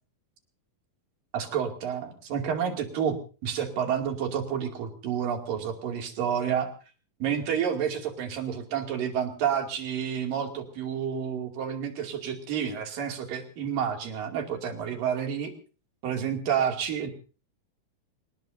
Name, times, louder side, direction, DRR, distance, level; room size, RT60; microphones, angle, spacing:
voice 1, 1.3-6.7 7.2-15.5 16.0-17.1, right 8 dB, 65° right, 4 dB, 4.1 m, -29 dB
27.5 x 18.5 x 2.7 m, 0.36 s
omnidirectional pair, 4.3 m